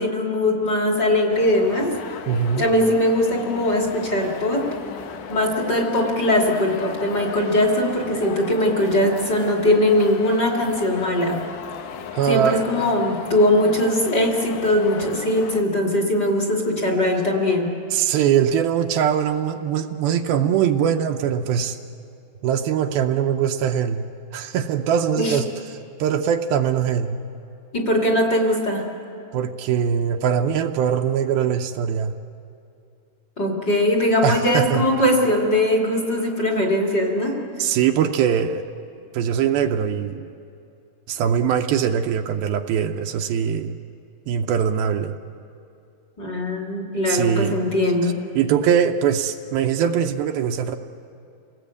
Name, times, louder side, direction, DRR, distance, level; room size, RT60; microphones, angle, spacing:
voice 1, 0.0-1.9 2.5-4.6 5.3-11.4 12.3-17.7 25.2-25.4 27.7-28.9 33.4-37.4 46.2-48.2, left 1 dB, 30° left, 0 dB, 2.5 m, -20 dB
sound 1, 1.3-15.6, left 8 dB, 70° left, 2.2 m, -36 dB
voice 2, 2.3-2.6 12.1-12.8 17.9-21.8 22.4-24.0 24.3-25.5 26.0-27.2 29.3-32.1 34.2-34.9 37.6-38.7 39.1-40.3 41.1-43.8 44.3-45.2 47.1-47.6 48.4-50.8, right 8 dB, 80° right, 5 dB, 2.5 m, -22 dB
28.5 x 19.0 x 8.3 m, 2.6 s
omnidirectional pair, 4.4 m